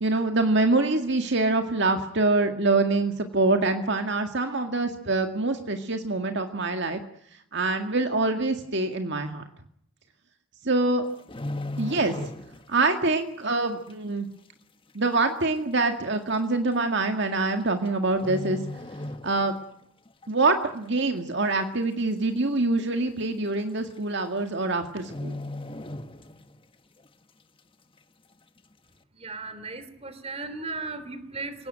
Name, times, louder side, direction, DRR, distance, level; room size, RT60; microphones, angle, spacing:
voice 1, 0.0-7.0 7.5-9.4 10.6-11.0 11.8-12.2 12.7-14.3 14.9-18.6 19.2-19.6 20.3-25.4, right 3 dB, 60° right, 6 dB, 2.0 m, -25 dB
sound 1, 11.0-12.8 13.1-13.3 13.9-14.0 14.9-15.0 15.2-15.3 16.1-16.4 17.5-17.9 18.1-19.7 20.1-20.3 20.8-21.3 21.6-21.7 22.0-22.1 22.5-22.6 23.5-23.6 23.9-24.2 24.5-24.6 25.0-26.6 27.0-27.1, left 1 dB, 25° left, 1.5 m, -36 dB
voice 2, 29.1-31.7, right 3 dB, 30° right, 12 dB, 3.2 m, -36 dB
28.0 x 18.0 x 9.1 m, 0.72 s
head